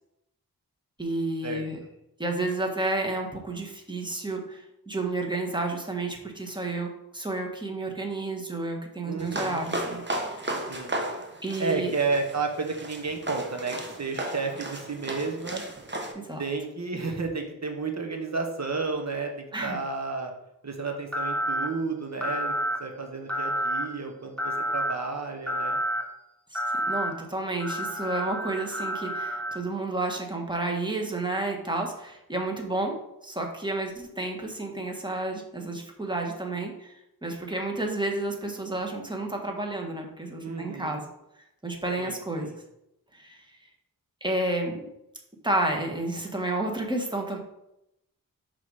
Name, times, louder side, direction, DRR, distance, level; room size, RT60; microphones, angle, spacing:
voice 1, 1.0-1.8 2.2-10.0 11.4-11.9 16.1-16.4 19.5-19.8 26.5-26.6 26.9-36.9 37.2-41.0 41.6-42.5 43.1-43.4 44.2-44.8 45.4-47.4, right 2 dB, 15° right, 1 dB, 1.5 m, -31 dB
voice 2, 9.0-9.7 10.7-11.0 11.6-15.6 16.4-20.3 20.6-22.5 22.8-25.8 40.4-41.0 42.0-42.6, right 4 dB, 50° right, 3 dB, 1.3 m, -32 dB
sound 1, 9.2-16.1, right 1 dB, 30° right, 1.1 m, -34 dB
sound 2, 21.1-21.7 22.2-22.8 23.3-23.9 24.4-24.9 25.5-26.0 26.5-27.1 27.6-29.6, equal, 5° left, 1.3 m, -29 dB
5.6 x 4.1 x 4.9 m, 0.85 s
cardioid pair, 45°, 36 cm